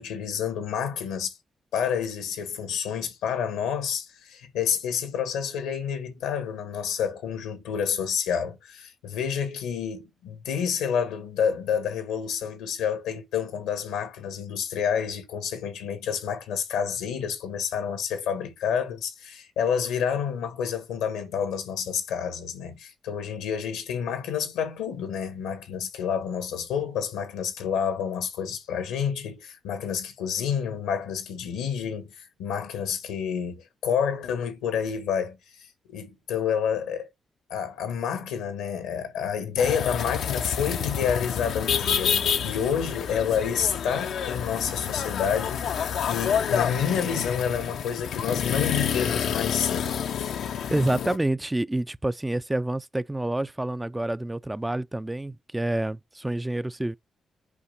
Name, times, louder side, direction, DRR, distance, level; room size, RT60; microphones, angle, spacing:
voice 1, 0.0-1.3 1.7-37.1 37.5-50.4, left 7 dB, 90° left, 1.5 m, -29 dB
sound 1, 39.6-51.2, left 8 dB, 75° left, 0.6 m, -28 dB
voice 2, 50.7-57.0, right 1 dB, 15° right, 0.4 m, -28 dB
8.5 x 5.1 x 5.7 m
supercardioid pair, 50°, 0 cm